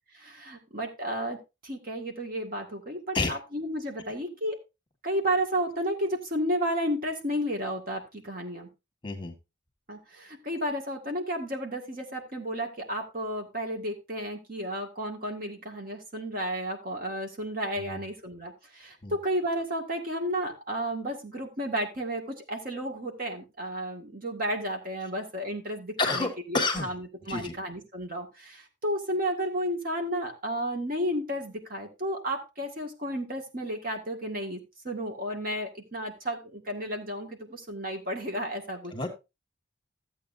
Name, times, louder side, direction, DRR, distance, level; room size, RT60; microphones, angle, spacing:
voice 1, 0.1-1.4 1.6-4.6 5.0-8.7 9.9-38.9, equal, 45° right, 3 dB, 2.0 m, -32 dB
voice 2, 9.0-9.4 17.8-18.0 19.0-19.2 26.0-26.9 27.3-27.5 38.9-39.1, left 3 dB, 25° left, 5 dB, 1.7 m, -29 dB
14.0 x 8.3 x 2.7 m, 0.26 s
head